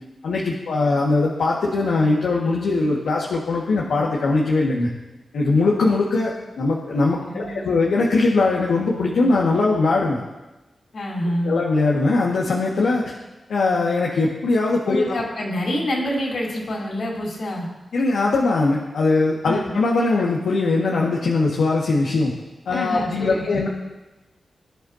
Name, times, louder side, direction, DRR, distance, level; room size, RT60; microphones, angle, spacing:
voice 1, 0.2-4.9 5.3-10.2 11.4-13.1 13.5-15.1 17.9-22.3 22.7-23.7, left 3 dB, 90° left, -4 dB, 1.9 m, -20 dB
voice 2, 7.3-7.8 10.9-11.6 14.9-17.7 19.5-19.7 22.7-23.6, equal, 70° left, -3 dB, 4.1 m, -27 dB
22.5 x 10.5 x 2.9 m, 1.1 s
cardioid pair, 45°, 0 cm